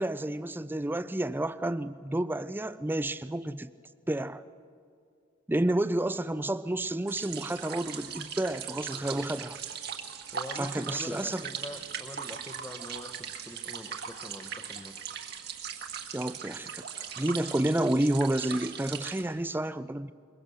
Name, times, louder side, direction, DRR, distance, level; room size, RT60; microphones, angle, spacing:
voice 1, 0.0-3.7 4.1-4.4 5.5-9.5 10.6-11.4 16.1-16.8 17.2-20.1, right 1 dB, 10° right, 14 dB, 0.4 m, -30 dB
sound 1, 7.1-19.2, right 7 dB, 55° right, 1.6 m, -39 dB
voice 2, 8.9-9.2 10.3-15.1, left 1 dB, 15° left, 9 dB, 1.0 m, -44 dB
22.5 x 21.5 x 6.9 m, 2.2 s
head